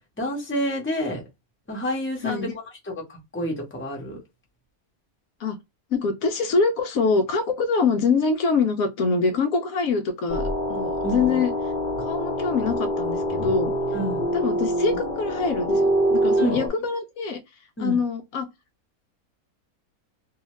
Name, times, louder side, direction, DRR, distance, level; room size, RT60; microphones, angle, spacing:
voice 1, 0.2-1.2 1.7-2.5 2.8-4.2 11.0-11.4 13.9-14.2 16.4-16.6 17.8-18.0, equal, 10° left, 0.8 m, -29 dB
voice 2, 5.9-11.5 12.0-13.7 14.3-17.4 17.8-18.5, left 4 dB, 70° left, 1.0 m, -24 dB
sound 1, 10.3-16.7, equal, 40° left, 0.9 m, -25 dB
2.7 x 2.4 x 3.0 m
omnidirectional pair, 1.6 m